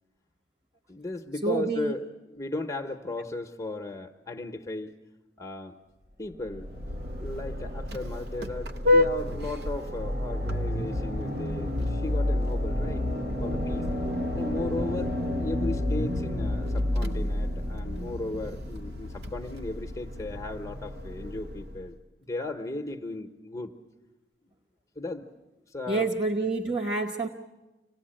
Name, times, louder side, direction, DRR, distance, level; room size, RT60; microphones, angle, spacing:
voice 1, 0.9-2.0 2.3-5.0 5.4-5.8 6.2-6.7 7.2-13.0 13.4-13.9 14.3-23.7 25.0-25.3 25.7-26.1, left 2 dB, 15° left, 4 dB, 0.9 m, -36 dB
voice 2, 1.4-1.9 25.9-27.3, right 3 dB, 30° right, -1 dB, 1.0 m, -28 dB
Vehicle horn car horn honking, 6.5-21.9, left 1 dB, 65° right, 1.0 m, -30 dB
sound 1, 6.7-18.6, left 1 dB, 50° right, 1.6 m, -36 dB
26.0 x 18.0 x 8.8 m, 1.1 s
head